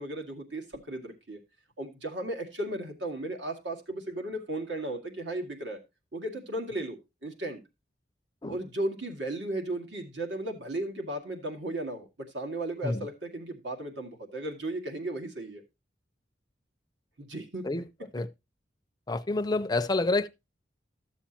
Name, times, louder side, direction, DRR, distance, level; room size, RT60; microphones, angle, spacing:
voice 1, 0.0-1.4 1.8-5.8 6.1-7.6 8.5-12.1 12.3-15.6 17.2-17.7, right 1 dB, 80° right, 2.0 m, -35 dB
voice 2, 19.1-20.3, left 2 dB, 20° left, 0.5 m, -28 dB
13.0 x 7.1 x 2.8 m
head